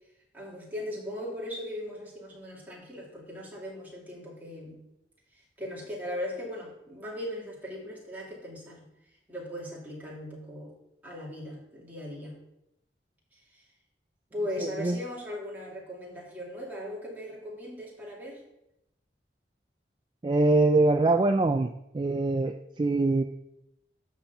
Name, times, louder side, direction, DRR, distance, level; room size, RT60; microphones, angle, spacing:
voice 1, 0.3-4.8 5.6-8.9 9.3-10.7 11.0-12.4 13.5-13.6 14.3-18.4, left 1 dB, 10° right, -5 dB, 2.5 m, -38 dB
voice 2, 14.6-15.0 20.2-23.2, right 2 dB, 25° right, 6 dB, 0.3 m, -24 dB
9.5 x 4.2 x 6.9 m, 0.85 s
head